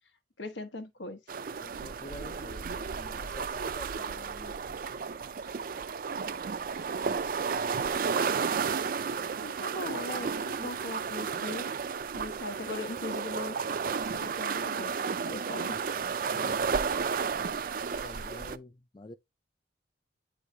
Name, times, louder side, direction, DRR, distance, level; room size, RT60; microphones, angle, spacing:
voice 1, 0.4-1.2 9.4-11.7 12.1-13.6 14.1-15.8 17.6-18.0, left 2 dB, 85° left, 1.2 m, -40 dB
sound 1, 1.3-18.6, right 5 dB, 50° right, 0.4 m, -32 dB
voice 2, 1.6-4.8 15.7-15.8 16.2-16.7 17.6-19.2, left 2 dB, 25° left, 0.4 m, -48 dB
8.8 x 4.8 x 2.7 m
head